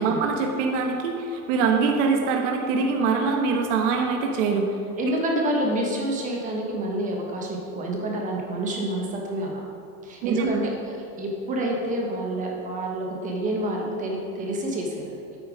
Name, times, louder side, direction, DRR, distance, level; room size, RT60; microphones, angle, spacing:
voice 1, 0.0-4.7 10.2-10.5, right 4 dB, 55° right, 2 dB, 1.1 m, -23 dB
voice 2, 5.0-9.6 10.0-15.1, right 1 dB, 15° right, 0 dB, 1.2 m, -28 dB
8.9 x 8.7 x 5.0 m, 2.7 s
supercardioid pair, 165°, 45 cm